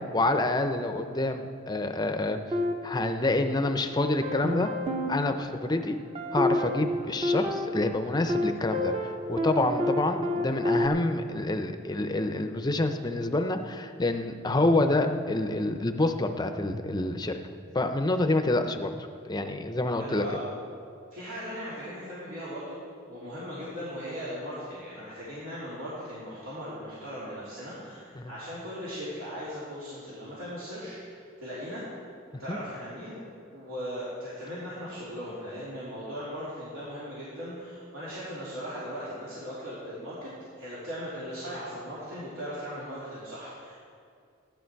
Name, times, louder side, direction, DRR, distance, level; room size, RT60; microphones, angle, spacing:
voice 1, 0.0-2.4 2.8-4.7 5.1-6.0 6.3-8.9 9.3-17.3 17.7-18.9 19.3-20.2 28.2-28.3 32.5-32.6, left 2 dB, 20° left, 7 dB, 0.6 m, -27 dB
sound 1, 2.5-3.8 4.2-10.9, left 1 dB, 30° right, 0.9 m, -30 dB
voice 2, 20.0-20.5 21.1-22.8 23.1-31.8 32.4-33.2 33.5-40.3 40.6-43.8, equal, 85° right, -10 dB, 3.3 m, -38 dB
15.0 x 11.5 x 4.6 m, 2.3 s
head